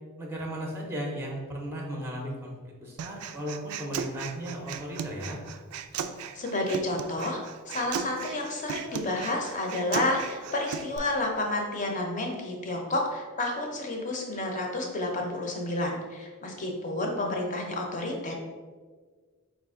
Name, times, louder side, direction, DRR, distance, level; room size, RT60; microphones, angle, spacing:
voice 1, 0.2-5.4, equal, 10° right, -1 dB, 0.5 m, -36 dB
Human voice, 3.0-11.0, right 7 dB, 90° right, 0.3 m, -37 dB
voice 2, 6.3-18.3, left 2 dB, 35° left, 1 dB, 0.7 m, -30 dB
4.5 x 2.5 x 3.6 m, 1.5 s
head